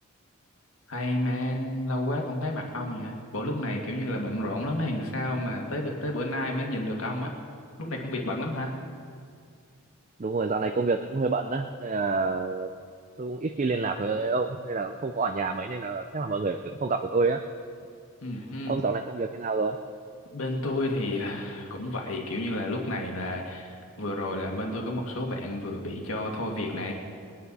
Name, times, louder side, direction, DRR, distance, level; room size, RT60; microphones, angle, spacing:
voice 1, 0.9-7.3 7.8-8.8 18.2-18.7 20.3-26.9, left 1 dB, 70° left, 0 dB, 1.9 m, -31 dB
voice 2, 10.2-12.7 13.2-17.4 18.7-19.8, right 3 dB, 35° right, 6 dB, 0.4 m, -28 dB
21.5 x 9.9 x 4.1 m, 2.2 s
head